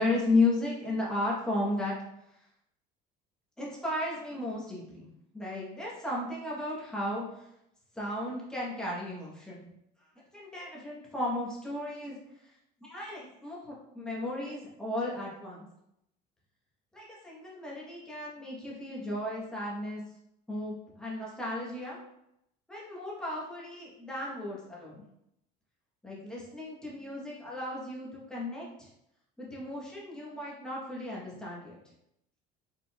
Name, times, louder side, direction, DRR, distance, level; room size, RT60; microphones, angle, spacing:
voice 1, 0.0-2.0 3.6-5.1 5.3-7.5 7.9-9.6 10.3-12.5 12.8-15.7 16.9-20.0 20.5-22.0 22.7-25.0 26.0-28.9 29.4-31.8, left 2 dB, 5° left, -5 dB, 0.9 m, -34 dB
4.4 x 3.6 x 2.2 m, 0.80 s
cardioid pair, 175°, 19 cm